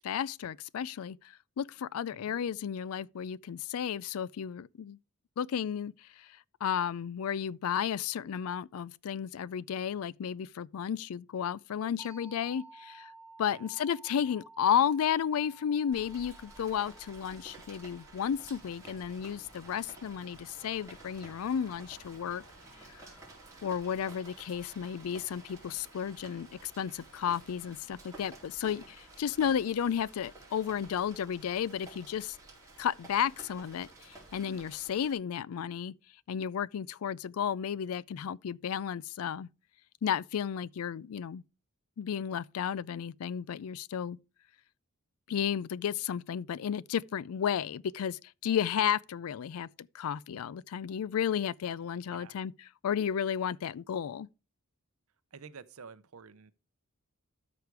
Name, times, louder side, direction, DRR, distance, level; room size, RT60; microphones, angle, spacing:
voice 1, 0.0-5.0 5.4-13.1 13.4-22.4 22.9-23.0 23.6-32.4 32.8-35.9 36.3-39.5 40.0-41.4 42.0-44.2 45.3-52.5 52.8-54.3, left 8 dB, 80° left, 0.4 m, -33 dB
sound 1, 12.0-21.4, right 3 dB, 15° left, 1.2 m, -56 dB
Rain, 15.9-35.1, right 2 dB, 15° right, 3.9 m, -52 dB
voice 2, 55.3-56.5, right 5 dB, 75° right, 0.7 m, -50 dB
13.0 x 5.0 x 4.7 m
head